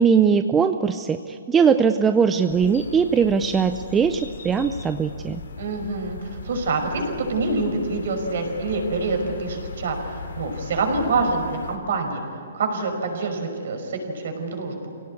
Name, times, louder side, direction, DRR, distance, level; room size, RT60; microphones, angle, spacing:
voice 1, 0.0-5.4, right 6 dB, 10° right, 8 dB, 0.5 m, -20 dB
sound 1, 2.5-11.8, left 5 dB, 85° left, 2.9 m, -38 dB
voice 2, 5.6-12.2 12.5-14.7, right 3 dB, 55° right, 4 dB, 5.5 m, -26 dB
25.5 x 17.5 x 9.6 m, 2.7 s
hypercardioid pair, 170°, 0 cm